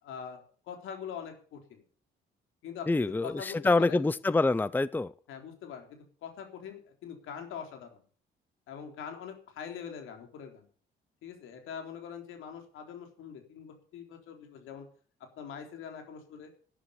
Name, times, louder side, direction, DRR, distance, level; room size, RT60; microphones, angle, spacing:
voice 1, 0.0-1.8 2.6-4.0 5.3-8.0 8.7-10.7 11.2-14.9 15.4-16.5, left 7 dB, 90° left, 4 dB, 3.6 m, -43 dB
voice 2, 2.9-5.1, left 3 dB, 10° left, 18 dB, 0.6 m, -26 dB
11.5 x 10.0 x 7.0 m, 0.43 s
cardioid pair, 90°, 20 cm